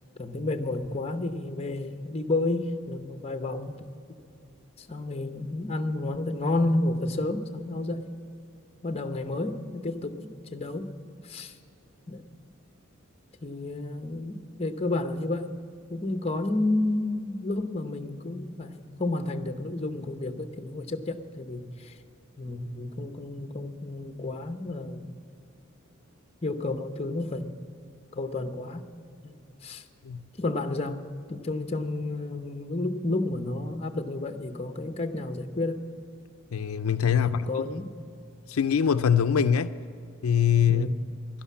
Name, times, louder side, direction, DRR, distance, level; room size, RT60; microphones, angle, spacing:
voice 1, 0.2-3.8 4.8-8.0 8.8-10.9 11.2-11.5 12.1-12.2 13.4-15.5 15.9-21.9 22.4-25.2 26.4-27.6 28.1-28.9 29.2-29.8 30.4-31.0 31.3-35.8 37.1-37.9 40.7-41.0, left 2 dB, 30° left, 0.8 m, -31 dB
voice 2, 36.5-37.6 38.5-39.7 40.2-40.9, left 8 dB, 85° left, 0.5 m, -23 dB
12.0 x 11.5 x 8.3 m
head